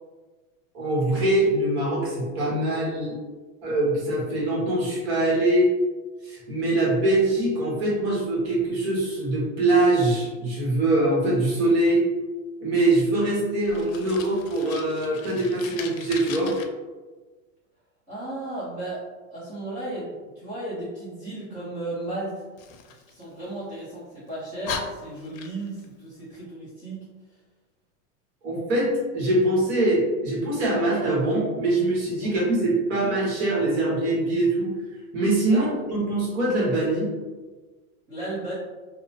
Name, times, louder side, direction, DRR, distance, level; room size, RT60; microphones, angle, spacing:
voice 1, 0.7-3.1 3.6-5.7 6.2-12.0 12.6-16.5 28.4-34.7 35.1-37.1, right 2 dB, 50° right, -6 dB, 1.3 m, -23 dB
Fire, 13.7-16.6 22.6-23.8 24.3-24.4 24.6-25.9, left 6 dB, 90° left, 0.5 m, -38 dB
voice 2, 18.1-19.0 19.3-22.4 22.9-27.0 32.2-32.3 35.5-35.7 38.1-38.5, right 2 dB, 20° right, -12 dB, 0.8 m, -35 dB
2.8 x 2.1 x 2.8 m, 1.3 s
supercardioid pair, 155°, 39 cm